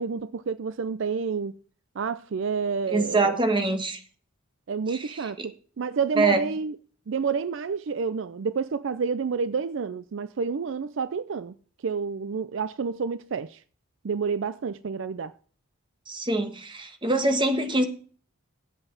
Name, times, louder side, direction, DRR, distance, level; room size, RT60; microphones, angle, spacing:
voice 1, 0.0-1.5 2.0-3.4 4.7-6.8 7.1-11.5 11.8-13.6 14.0-15.3, right 5 dB, 65° right, 0.4 m, -29 dB
voice 2, 2.9-4.0 4.9-5.5 6.2-6.5 16.1-17.8, right 2 dB, 25° right, 1.3 m, -25 dB
9.9 x 8.0 x 5.8 m
head